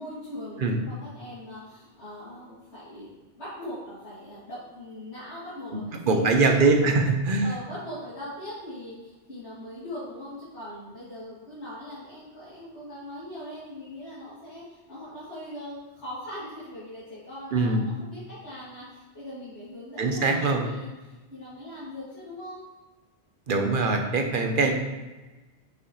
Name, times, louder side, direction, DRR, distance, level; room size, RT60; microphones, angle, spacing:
voice 1, 0.0-7.0 7.4-22.6, left 1 dB, 85° left, -13 dB, 2.8 m, -41 dB
voice 2, 6.0-7.5 17.5-17.8 20.0-20.7 23.5-24.7, right 3 dB, 55° right, 4 dB, 0.9 m, -22 dB
6.3 x 5.7 x 3.1 m, 1.2 s
omnidirectional pair, 1.1 m